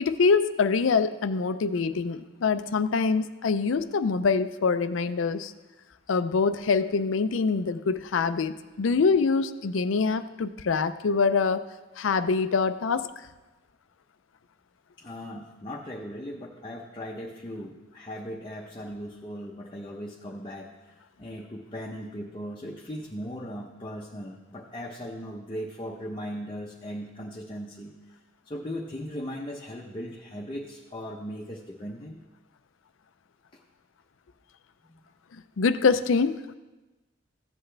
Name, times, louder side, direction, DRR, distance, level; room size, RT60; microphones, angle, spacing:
voice 1, 0.0-5.5 6.1-11.6 12.0-13.1 35.6-36.6, left 4 dB, 80° left, 12 dB, 0.5 m, -25 dB
voice 2, 15.0-28.2 28.5-32.2 34.9-35.1, equal, 25° left, -1 dB, 0.7 m, -38 dB
14.5 x 8.1 x 3.3 m, 1.1 s
head